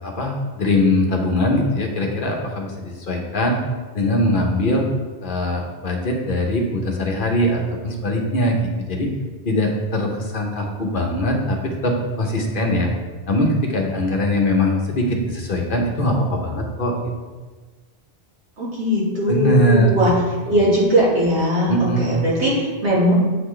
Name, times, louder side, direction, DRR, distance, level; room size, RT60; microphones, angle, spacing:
voice 1, 0.0-3.6 3.9-4.9 5.2-9.1 9.4-12.9 13.3-17.0 19.3-20.1 20.5-20.6 21.7-22.1, left 1 dB, 50° left, 1 dB, 1.0 m, -21 dB
voice 2, 18.6-20.1 20.4-23.1, equal, 70° right, -7 dB, 2.2 m, -19 dB
7.8 x 4.1 x 3.2 m, 1.4 s
omnidirectional pair, 1.2 m